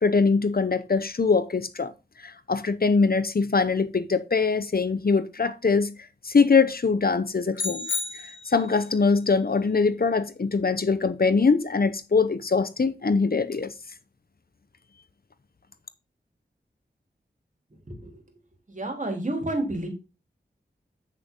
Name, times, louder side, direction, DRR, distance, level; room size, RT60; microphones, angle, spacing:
voice 1, 0.0-1.9 2.2-5.9 6.2-7.9 8.2-13.7, left 4 dB, 55° left, 0.8 m, -23 dB
sound 1, 7.5-8.9, left 4 dB, 90° left, 2.4 m, -32 dB
voice 2, 17.9-18.2 18.7-19.9, right 1 dB, 40° right, 3.7 m, -30 dB
8.4 x 6.7 x 3.8 m
wide cardioid pair, 55°, 19 cm